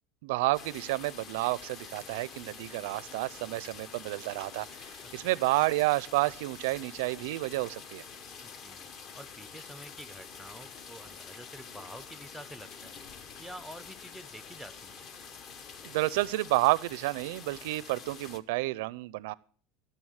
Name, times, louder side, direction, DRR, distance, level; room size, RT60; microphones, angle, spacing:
voice 1, 0.2-4.7 5.1-8.0 15.8-19.3, right 20 dB, 75° right, 21 dB, 0.4 m, -30 dB
sound 1, 0.5-18.4, left 6 dB, 35° left, 0.9 m, -47 dB
voice 2, 5.0-5.3 8.4-8.9 9.1-13.1 13.4-15.0, equal, ahead, 13 dB, 0.5 m, -48 dB
14.5 x 6.8 x 6.4 m, 0.44 s
cardioid pair, 165°, 0 cm